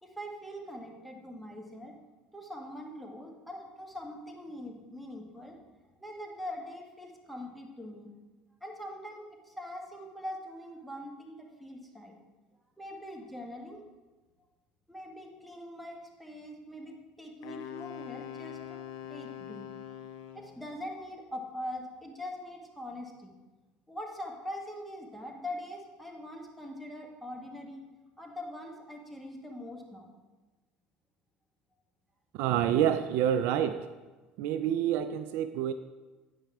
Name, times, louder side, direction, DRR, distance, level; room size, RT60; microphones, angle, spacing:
voice 1, 0.0-1.9 2.3-5.6 6.0-8.1 8.6-12.1 12.8-13.8 14.9-19.7 20.3-23.3 23.9-27.8 28.2-30.1, left 1 dB, ahead, 1 dB, 1.6 m, -42 dB
Wind instrument woodwind instrument, 17.4-20.6, left 10 dB, 70° left, 0.5 m, -43 dB
voice 2, 32.3-33.8 34.4-35.7, right 10 dB, 65° right, 11 dB, 0.4 m, -27 dB
8.9 x 5.7 x 3.5 m, 1.2 s
hypercardioid pair, 75°, 4 cm